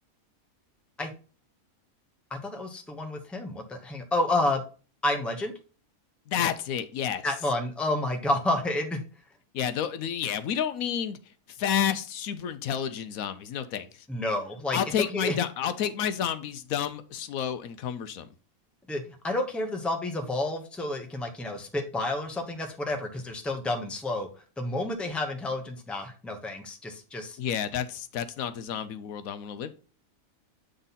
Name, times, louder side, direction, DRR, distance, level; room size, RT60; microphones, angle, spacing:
voice 1, 2.3-4.6 5.0-5.5 7.2-9.0 14.1-15.4 18.9-24.3 24.6-27.4, left 2 dB, ahead, 0.8 m, -30 dB
voice 2, 6.3-7.2 9.5-11.2 11.5-14.1 14.7-18.3 27.4-29.7, left 9 dB, 75° left, 1.1 m, -30 dB
8.0 x 3.8 x 4.1 m
omnidirectional pair, 1.5 m